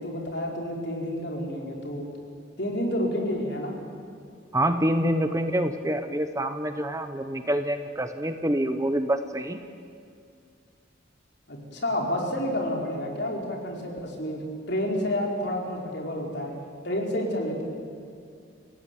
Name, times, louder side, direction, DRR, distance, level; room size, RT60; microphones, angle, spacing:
voice 1, 0.0-2.1 2.6-3.8 11.5-16.5 16.8-17.6, left 1 dB, 55° left, 0 dB, 4.7 m, -29 dB
voice 2, 4.5-9.6, right 1 dB, 15° right, 8 dB, 0.9 m, -26 dB
29.0 x 18.0 x 9.2 m, 2.3 s
head